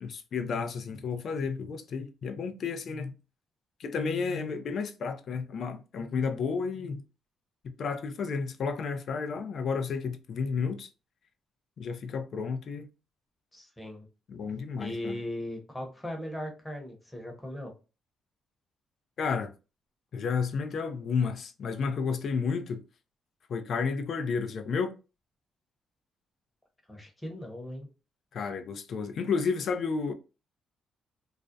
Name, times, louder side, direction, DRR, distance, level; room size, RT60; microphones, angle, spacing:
voice 1, 0.0-3.1 3.8-7.0 7.8-10.9 11.8-12.8 14.3-15.2 19.2-19.5 20.1-22.8 23.5-24.9 28.3-30.1, left 5 dB, 60° left, 0.4 m, -31 dB
voice 2, 13.5-14.1 14.8-17.7 26.9-27.9, left 1 dB, 10° left, 0.8 m, -38 dB
2.4 x 2.1 x 2.5 m
cardioid pair, 90°, 0 cm